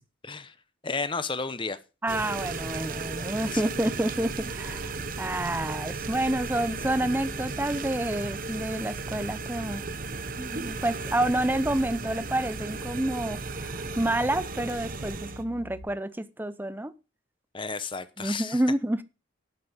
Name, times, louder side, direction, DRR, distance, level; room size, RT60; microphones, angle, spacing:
voice 1, 0.2-0.5 0.8-1.8 3.5-3.6 17.5-18.6, left 4 dB, 25° left, 0.9 m, -32 dB
voice 2, 2.0-9.8 10.4-16.9 18.2-19.0, right 1 dB, 10° right, 0.6 m, -29 dB
sound 1, 2.1-15.4, right 4 dB, 45° right, 1.1 m, -35 dB
sound 2, 4.4-15.8, right 1 dB, 85° left, 3.7 m, -45 dB
11.5 x 8.8 x 5.2 m
head